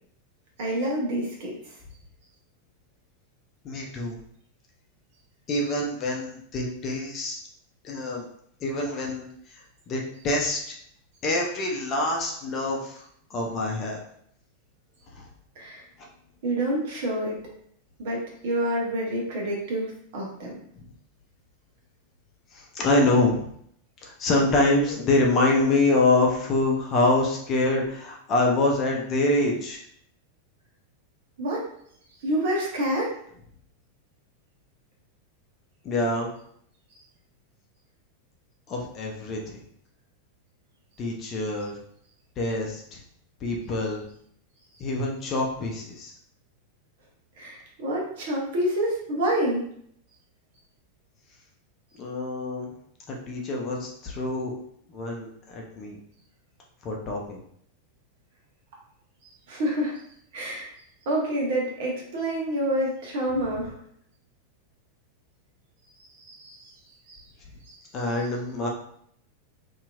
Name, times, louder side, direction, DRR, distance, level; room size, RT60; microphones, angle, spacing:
voice 1, 0.6-1.6 15.6-15.8 16.4-17.5 18.0-20.6 31.4-31.7 32.2-33.1 47.4-49.7 59.5-60.0 60.3-60.7 61.0-63.7 66.2-66.7 67.1-67.2 67.7-67.8, right 1 dB, 55° right, -2 dB, 1.0 m, -28 dB
voice 2, 3.6-4.2 5.5-7.4 7.8-8.3 8.6-9.3 9.5-10.6 11.2-13.0 13.3-14.0 15.1-15.3 20.7-20.8 22.5-23.5 24.0-29.8 35.8-36.3 38.7-39.4 41.0-41.8 42.4-43.0 43.4-44.1 44.8-46.1 52.0-52.7 53.1-54.5 54.9-56.0 56.8-57.4 67.9-68.7, left 2 dB, 30° left, -1 dB, 0.6 m, -25 dB
2.8 x 2.7 x 2.4 m, 0.67 s
figure-of-eight pair, 90°, 0 cm